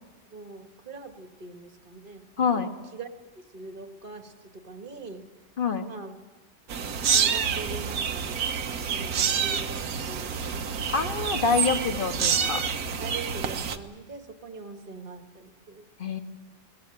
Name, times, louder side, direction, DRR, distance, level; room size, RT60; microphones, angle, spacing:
voice 1, 0.3-3.1 3.5-5.3 5.8-6.1 7.1-8.4 8.9-10.7 13.0-15.9, right 3 dB, 35° right, 6 dB, 1.7 m, -42 dB
voice 2, 2.4-2.7 5.6-5.9 10.9-12.6 16.0-16.2, left 5 dB, 35° left, 7 dB, 1.5 m, -26 dB
sound 1, 6.7-13.8, right 7 dB, 75° right, 1.5 m, -28 dB
22.0 x 19.5 x 8.8 m, 1.2 s
omnidirectional pair, 1.6 m